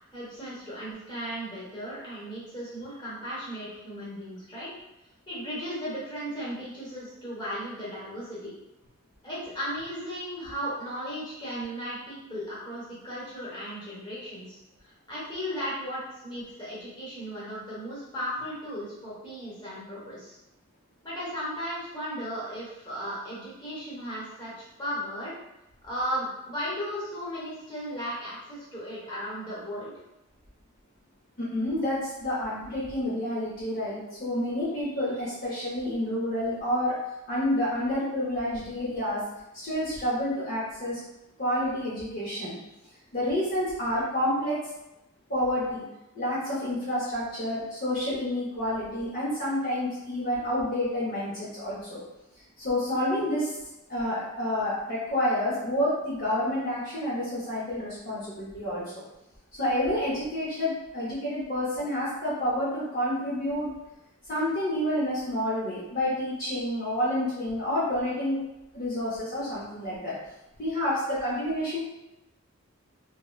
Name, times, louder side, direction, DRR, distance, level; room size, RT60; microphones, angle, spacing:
voice 1, 0.1-4.7 5.3-8.5 9.2-20.4 21.0-24.5 24.8-25.3 25.8-29.9, equal, 20° left, -9 dB, 1.0 m, -36 dB
voice 2, 31.4-37.0 37.3-39.2 39.5-41.0 41.4-42.6 43.1-44.6 45.3-45.8 46.1-52.0 52.6-53.6 53.9-58.8 59.6-63.7 64.3-68.4 68.7-70.1 70.6-71.8, left 1 dB, 45° left, -9 dB, 0.7 m, -29 dB
3.0 x 2.1 x 2.3 m, 0.94 s
head